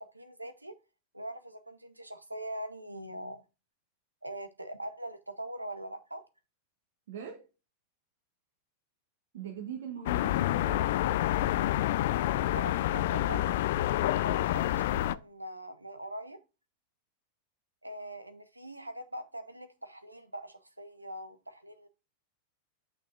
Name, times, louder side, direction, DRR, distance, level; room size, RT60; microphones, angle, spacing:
voice 1, 0.1-0.7 1.1-3.4 4.2-6.2 12.5-13.6 14.1-16.4 17.8-21.9, right 1 dB, 85° right, 0.7 m, -42 dB
voice 2, 7.1-7.5 9.3-10.9 13.1-13.4, right 8 dB, 60° right, 1.3 m, -42 dB
sound 1, 10.1-15.2, left 14 dB, 55° left, 0.3 m, -28 dB
8.4 x 6.5 x 2.5 m
figure-of-eight pair, 90°, 0 cm